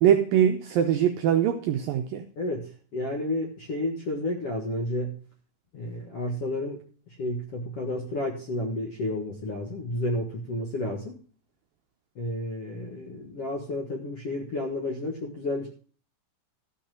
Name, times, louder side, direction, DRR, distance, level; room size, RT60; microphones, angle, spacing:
voice 1, 0.0-2.2, right 10 dB, 85° right, 2.0 m, -22 dB
voice 2, 2.4-5.1 5.7-6.8 7.2-11.1 12.1-15.7, left 1 dB, 55° left, 1.6 m, -31 dB
13.0 x 5.7 x 7.6 m
omnidirectional pair, 5.0 m